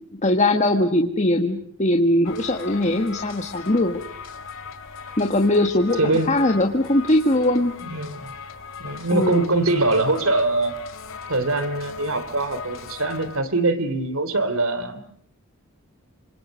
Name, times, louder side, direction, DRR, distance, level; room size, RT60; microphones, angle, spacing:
voice 1, 0.2-4.0 5.2-7.7 9.1-9.4, left 1 dB, 35° left, 3 dB, 1.6 m, -20 dB
sound 1, 2.2-13.4, left 5 dB, 65° left, 2.6 m, -39 dB
voice 2, 6.0-6.5 7.8-8.3 8.8-10.8 11.3-15.0, right 2 dB, 70° right, 12 dB, 3.0 m, -23 dB
29.0 x 26.0 x 6.5 m, 0.65 s
head